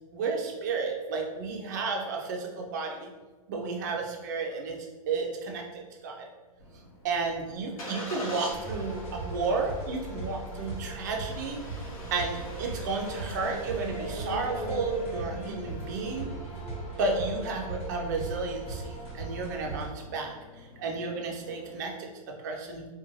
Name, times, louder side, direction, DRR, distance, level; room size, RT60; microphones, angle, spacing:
voice 1, 0.1-3.1 3.5-4.8 5.1-6.3 7.0-11.6 12.1-16.3 17.0-22.9, right 4 dB, 30° right, 1 dB, 0.4 m, -32 dB
Engine starting, 6.6-21.9, left 1 dB, 70° left, 0.9 m, -44 dB
sound 1, 8.5-19.9, right 2 dB, 20° left, 0.7 m, -38 dB
2.5 x 2.1 x 3.0 m, 1.3 s
hypercardioid pair, 165°, 19 cm